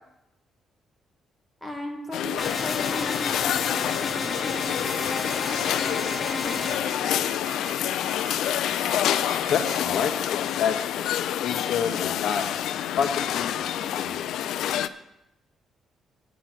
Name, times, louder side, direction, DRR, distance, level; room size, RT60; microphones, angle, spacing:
voice 1, 1.6-7.3, left 1 dB, ahead, -1 dB, 2.0 m, -37 dB
sound 1, 2.1-14.9, left 11 dB, 80° left, 0.4 m, -28 dB
sound 2, 2.4-6.8, left 4 dB, 25° left, 0.9 m, -32 dB
sound 3, 4.8-9.7, right 4 dB, 35° right, 2.7 m, -40 dB
voice 2, 9.5-11.0 11.4-12.4 12.7-14.3, left 7 dB, 60° left, 5 dB, 1.0 m, -29 dB
9.2 x 8.3 x 6.1 m, 0.88 s
cardioid pair, 135°, 0 cm